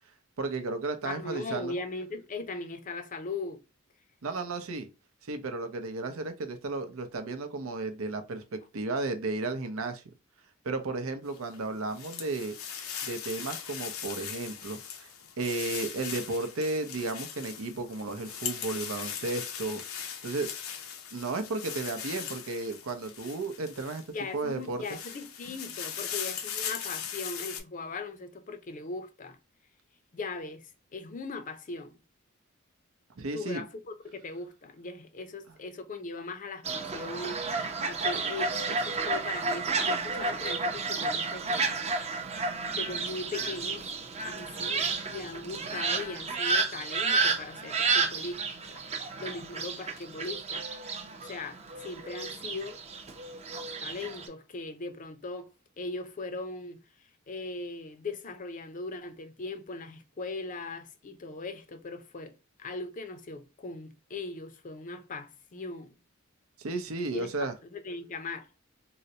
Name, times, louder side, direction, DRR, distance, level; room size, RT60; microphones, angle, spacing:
voice 1, 0.4-1.8 4.2-4.9 5.2-10.0 10.6-12.5 13.0-15.1 15.4-19.8 20.2-20.5 21.1-24.0 24.3-24.8 33.2-33.6 66.6-67.5, right 3 dB, 85° right, 0.6 m, -33 dB
voice 2, 1.0-3.6 24.1-29.4 30.1-32.0 33.3-33.8 34.0-41.7 42.8-43.9 44.2-48.4 48.7-51.0 51.2-52.8 53.8-55.5 55.8-56.8 57.3-62.3 62.6-65.9 67.1-68.5, left 3 dB, 40° left, 0.5 m, -39 dB
sound 1, 11.3-24.2 24.6-27.6, left 8 dB, 85° left, 0.6 m, -39 dB
Fowl, 36.6-54.3, right 4 dB, 30° right, 0.6 m, -31 dB
3.8 x 2.1 x 2.7 m
head